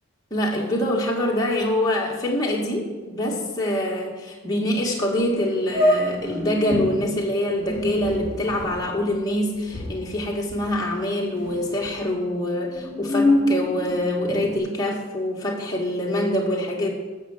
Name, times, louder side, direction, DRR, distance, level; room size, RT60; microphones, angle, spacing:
voice 1, 0.3-16.9, left 1 dB, 20° left, -2 dB, 2.2 m, -25 dB
sound 1, 5.1-5.2 5.7-6.9 7.5-11.0 11.3-11.9 12.6-14.6, left 1 dB, 20° right, 4.5 m, -25 dB
13.0 x 6.9 x 7.6 m, 1.3 s
head